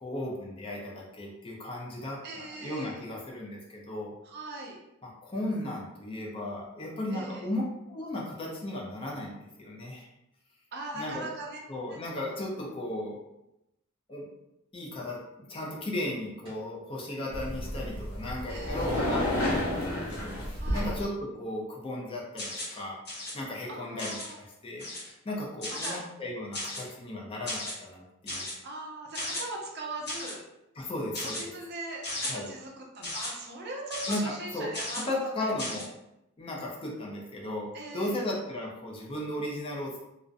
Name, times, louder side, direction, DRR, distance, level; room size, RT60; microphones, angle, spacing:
voice 1, 0.0-4.1 5.0-10.1 10.9-11.2 11.7-13.2 14.1-14.3 14.7-23.0 23.3-24.9 25.2-28.5 30.8-31.5 32.3-32.5 34.1-35.9 36.4-37.7 37.9-40.0, left 1 dB, 25° left, -2 dB, 0.4 m, -36 dB
voice 2, 2.2-3.0 4.2-4.8 7.1-7.5 10.7-11.6 11.9-12.0 18.5-19.0 20.5-20.9 23.7-24.4 25.7-26.0 28.6-30.4 31.2-35.5 37.7-38.2, right 2 dB, 50° right, 0 dB, 0.5 m, -40 dB
sound 1, 16.4-16.7 20.4-20.5 20.7-21.1, right 1 dB, 25° right, 1.0 m, -45 dB
sound 2, 17.3-21.0, left 1 dB, 80° left, 0.7 m, -31 dB
sound 3, 22.4-22.8 23.1-23.3 24.0-24.3 24.8-25.1 25.6-26.0 26.5-26.9 27.5-27.7 28.3-28.5 29.1-29.4 30.1-30.4 31.1-31.4 32.0-32.3 33.0-33.3 33.9-34.2 34.7-35.1 35.6-35.8, left 2 dB, 50° left, 0.8 m, -35 dB
2.5 x 2.1 x 2.4 m, 0.88 s
head